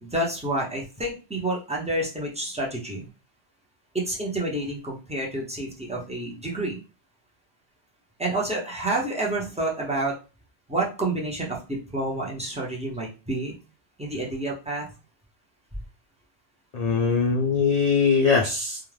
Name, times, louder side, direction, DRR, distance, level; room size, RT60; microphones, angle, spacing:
voice 1, 0.0-3.1 3.9-6.8 8.2-10.2 10.7-13.5 14.0-14.9, right 2 dB, 10° right, -4 dB, 0.3 m, -29 dB
voice 2, 16.7-18.8, left 5 dB, 65° left, -1 dB, 0.4 m, -21 dB
2.4 x 2.1 x 3.2 m, 0.32 s
omnidirectional pair, 1.2 m